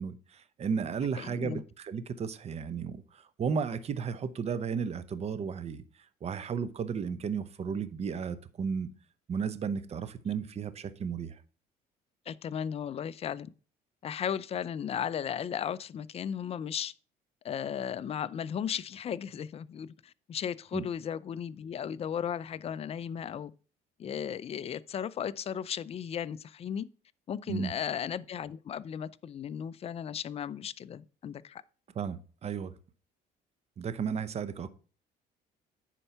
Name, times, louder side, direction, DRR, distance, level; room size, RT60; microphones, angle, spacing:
voice 1, 0.0-5.8 6.2-8.9 9.3-11.4 20.7-20.9 27.5-27.7 31.9-32.7 33.8-34.7, right 6 dB, 40° right, 0.8 m, -34 dB
voice 2, 1.2-1.6 12.3-13.5 14.0-16.9 17.4-23.5 24.0-26.9 27.3-31.6, left 8 dB, 35° left, 0.4 m, -35 dB
10.0 x 4.5 x 5.6 m
cardioid pair, 110°, 17 cm